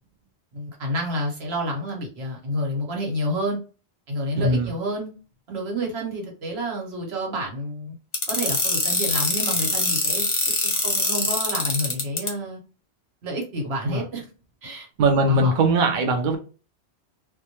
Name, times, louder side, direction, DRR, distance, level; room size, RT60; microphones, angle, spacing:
voice 1, 0.5-3.6 4.1-5.1 5.5-7.9 8.3-12.6 13.2-14.3 14.6-14.9 15.2-15.5, equal, 75° right, 1.1 m, -29 dB
voice 2, 4.4-4.7 13.9-14.0 15.0-16.4, right 2 dB, 55° right, 0.6 m, -20 dB
sound 1, 8.1-12.3, left 2 dB, 35° left, 0.6 m, -23 dB
2.2 x 2.1 x 2.8 m
omnidirectional pair, 1.1 m